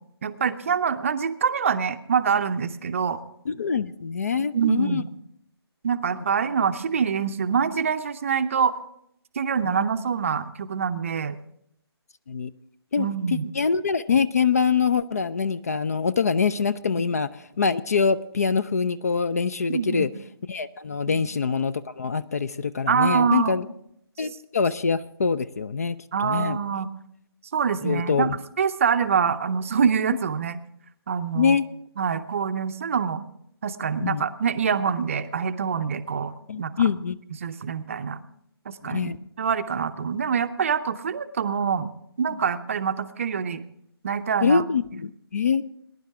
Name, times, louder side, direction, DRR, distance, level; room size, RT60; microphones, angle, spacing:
voice 1, 0.2-3.2 4.4-5.1 5.8-8.8 9.4-11.4 13.0-13.5 19.7-20.1 21.1-21.3 22.9-23.6 26.1-26.9 27.5-30.6 31.1-31.6 32.0-33.2 33.6-36.3 36.6-36.7 37.4-38.2 38.7-39.1 39.4-41.9 42.2-43.6 44.0-44.6, right 6 dB, 30° right, 10 dB, 0.6 m, -25 dB
voice 2, 3.5-5.0 9.6-9.8 12.3-12.5 12.9-17.3 17.6-20.1 20.5-23.7 24.2-26.6 27.8-28.4 31.3-31.7 34.0-34.2 36.5-37.2 38.9-39.2 42.3-42.4 44.4-45.6, left 5 dB, 35° left, 15 dB, 0.4 m, -24 dB
20.0 x 10.5 x 3.6 m, 0.72 s
figure-of-eight pair, 145°, 14 cm